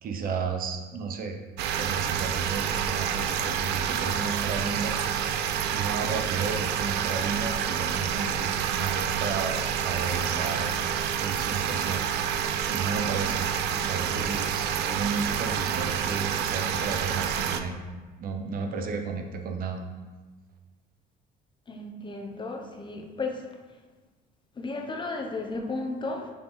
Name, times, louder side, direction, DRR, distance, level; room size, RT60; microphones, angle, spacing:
voice 1, 0.0-1.4 1.7-4.9 5.7-10.7 11.2-12.0 12.7-17.7 18.2-19.8, right 5 dB, 60° right, 4 dB, 0.8 m, -33 dB
sound 1, 1.6-17.6, right 8 dB, 80° right, 0.5 m, -28 dB
voice 2, 21.7-23.4 24.6-26.3, left 3 dB, 30° left, 3 dB, 0.9 m, -34 dB
6.6 x 4.4 x 4.8 m, 1.3 s
cardioid pair, 110°, 17 cm